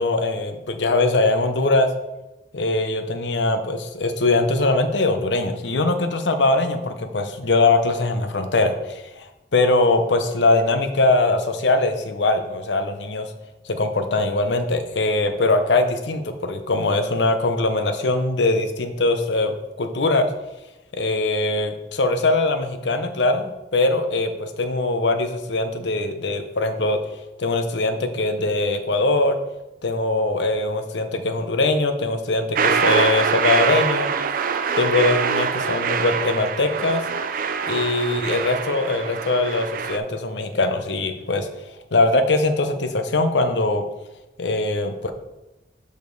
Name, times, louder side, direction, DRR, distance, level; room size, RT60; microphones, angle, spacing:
voice 1, 0.0-1.9 2.5-13.3 13.6-20.3 20.9-27.0 27.4-29.4 29.8-34.1 34.8-37.0 37.6-41.5 41.9-43.8 44.4-45.1, left 2 dB, 80° left, 7 dB, 0.8 m, -21 dB
sound 1, 32.6-40.0, right 6 dB, 50° right, 0.4 m, -24 dB
6.7 x 5.2 x 4.0 m, 1.0 s
head